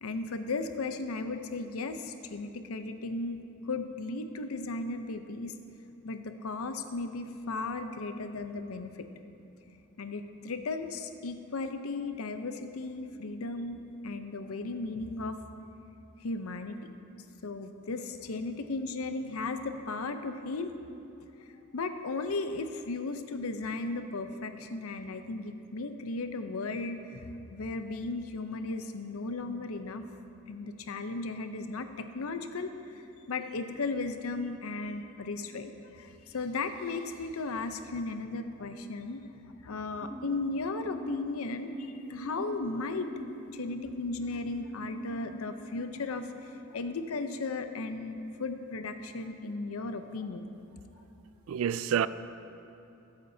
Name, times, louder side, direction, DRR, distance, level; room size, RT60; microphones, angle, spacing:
voice 1, 0.0-5.6 6.0-9.1 10.0-15.4 16.2-16.8 17.4-20.7 21.7-30.0 30.5-39.2 39.6-43.1 43.5-50.5, left 3 dB, 75° left, 0.6 m, -36 dB
sound 1, 40.0-47.4, right 1 dB, 25° left, 1.2 m, -44 dB
voice 2, 51.5-52.1, right 8 dB, 70° right, 0.3 m, -28 dB
18.0 x 7.9 x 2.7 m
head